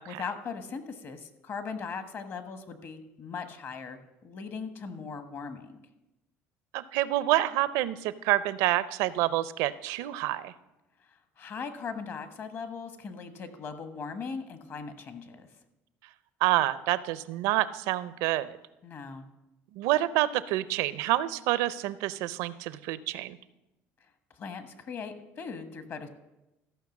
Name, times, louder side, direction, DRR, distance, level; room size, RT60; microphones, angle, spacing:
voice 1, 0.0-5.8 11.1-15.5 18.8-19.2 24.3-26.1, left 5 dB, 45° left, 10 dB, 1.3 m, -39 dB
voice 2, 6.7-10.5 16.4-18.6 19.8-23.4, right 15 dB, 80° right, 16 dB, 0.6 m, -28 dB
14.0 x 5.8 x 7.2 m, 0.96 s
supercardioid pair, 110°, 5 cm